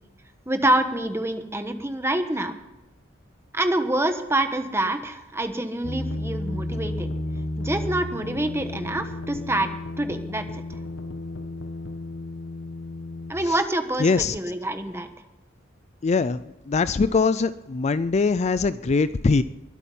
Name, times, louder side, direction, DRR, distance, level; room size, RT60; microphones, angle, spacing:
voice 1, 0.5-2.5 3.5-7.1 7.6-9.7 10.0-10.6 13.3-15.1, right 1 dB, 15° right, 7 dB, 1.2 m, -26 dB
sound 1, 5.8-13.3, left 1 dB, 90° left, 1.4 m, -33 dB
voice 2, 14.0-14.4 16.0-16.4 16.7-19.4, left 4 dB, 35° left, 14 dB, 0.4 m, -22 dB
22.0 x 8.4 x 5.5 m, 0.97 s
head